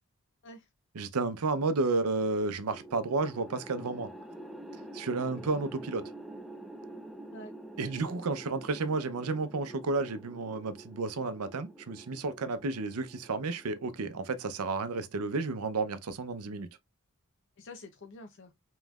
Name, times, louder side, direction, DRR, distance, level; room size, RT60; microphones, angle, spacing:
voice 1, 1.0-4.1 4.9-6.1 7.8-16.7, right 3 dB, 80° right, 0.6 m, -32 dB
sound 1, 2.7-15.0, right 1 dB, ahead, 0.3 m, -47 dB
voice 2, 7.3-8.2 17.6-18.5, left 2 dB, 55° left, 0.6 m, -48 dB
5.3 x 3.1 x 2.3 m
head